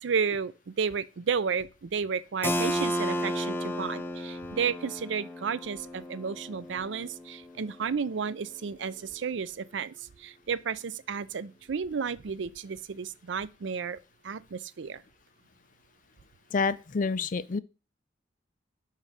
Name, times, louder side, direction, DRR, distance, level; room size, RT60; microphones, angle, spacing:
voice 1, 0.0-14.0 14.2-15.0, right 6 dB, 75° right, 0.5 m, -32 dB
Keyboard (musical), 2.4-8.0, equal, 10° left, 0.7 m, -33 dB
voice 2, 16.5-17.6, left 4 dB, 45° left, 0.5 m, -28 dB
5.5 x 5.0 x 6.4 m
head